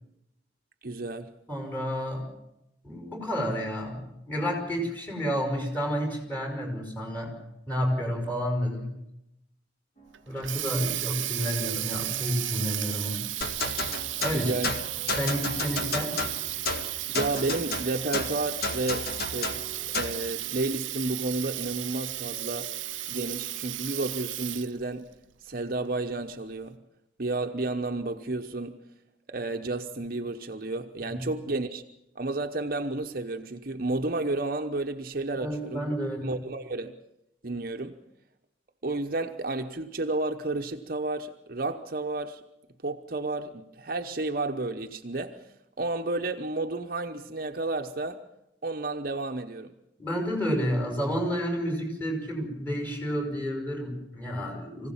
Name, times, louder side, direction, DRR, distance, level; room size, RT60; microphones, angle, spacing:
voice 1, 0.8-1.3 14.3-14.7 15.0-15.1 17.1-19.6 20.0-22.8 23.1-25.1 25.4-26.8 27.2-28.8 29.3-31.8 32.1-35.9 36.2-37.0 37.4-38.0 38.8-42.4 42.8-45.5 45.8-48.2 48.6-49.7, right 2 dB, 50° right, 1.0 m, -31 dB
voice 2, 1.5-2.2 2.8-7.3 7.7-9.0 10.3-13.2 14.2-14.5 15.2-16.1 31.0-31.2 35.4-36.3 50.0-54.9, equal, 10° left, 5.6 m, -30 dB
sound 1, 10.0-24.2, equal, 35° left, 4.9 m, -51 dB
Water tap faucet, 10.1-24.8, right 16 dB, 90° right, 0.7 m, -34 dB
sound 2, 13.4-20.2, left 3 dB, 55° left, 1.9 m, -32 dB
24.5 x 16.5 x 7.3 m
head